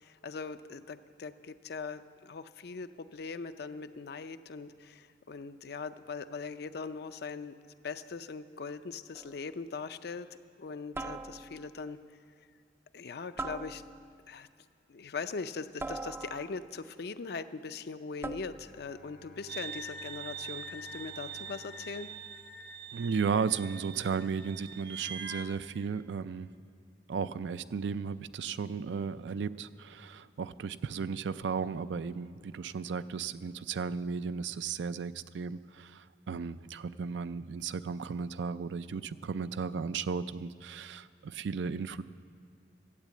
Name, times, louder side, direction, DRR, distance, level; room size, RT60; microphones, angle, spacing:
voice 1, 0.0-7.5 7.8-12.0 12.9-13.8 14.3-14.5 14.9-22.1, left 4 dB, 60° left, 11 dB, 0.5 m, -41 dB
sound 1, 9.1-9.5 10.9-11.7 13.4-14.2 15.8-16.7 18.2-18.8, right 2 dB, 15° right, 0.4 m, -41 dB
Bowed string instrument, 18.4-23.4, left 2 dB, 85° left, 1.9 m, -56 dB
sound 2, 19.5-25.4, right 5 dB, 65° right, 0.8 m, -43 dB
voice 2, 22.9-26.5 27.1-42.0, right 5 dB, 85° right, 14 dB, 0.4 m, -35 dB
12.0 x 8.3 x 8.3 m, 2.4 s
head